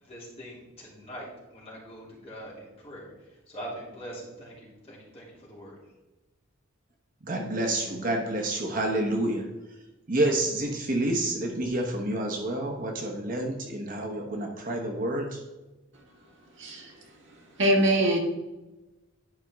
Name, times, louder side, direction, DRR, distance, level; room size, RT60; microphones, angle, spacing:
voice 1, 0.0-3.1 3.5-5.7, right 1 dB, 30° left, -5 dB, 2.9 m, -43 dB
voice 2, 7.2-9.5 10.1-15.4, right 1 dB, 40° right, 2 dB, 1.0 m, -28 dB
voice 3, 16.6-16.9 17.6-18.2, right 1 dB, 60° right, 0 dB, 1.6 m, -22 dB
10.5 x 5.2 x 3.5 m, 1.1 s
head